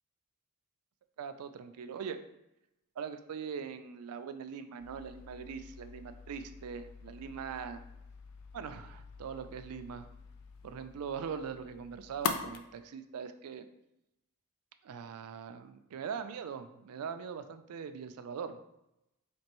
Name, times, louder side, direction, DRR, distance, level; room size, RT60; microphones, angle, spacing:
voice 1, 1.2-2.2 3.0-7.8 8.5-10.1 10.6-13.7 14.8-18.6, right 6 dB, 75° right, 10 dB, 0.4 m, -41 dB
sound 1, 4.8-12.6, left 6 dB, 70° left, 0.4 m, -43 dB
4.3 x 2.9 x 2.9 m, 0.88 s
head